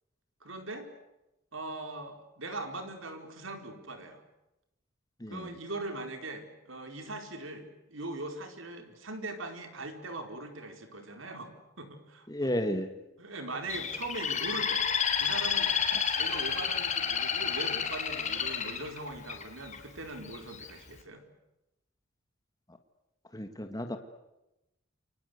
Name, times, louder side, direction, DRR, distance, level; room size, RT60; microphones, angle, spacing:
voice 1, 0.4-0.9 1.5-4.2 5.3-11.5 11.8-12.5 13.2-14.8 15.2-21.2, right 2 dB, 75° right, 6 dB, 4.5 m, -41 dB
voice 2, 12.3-13.0 23.3-24.0, equal, 20° left, 6 dB, 1.7 m, -32 dB
Bird, 13.7-19.8 20.3-20.7, left 7 dB, 35° left, 3.7 m, -30 dB
29.5 x 25.0 x 8.1 m, 0.94 s
head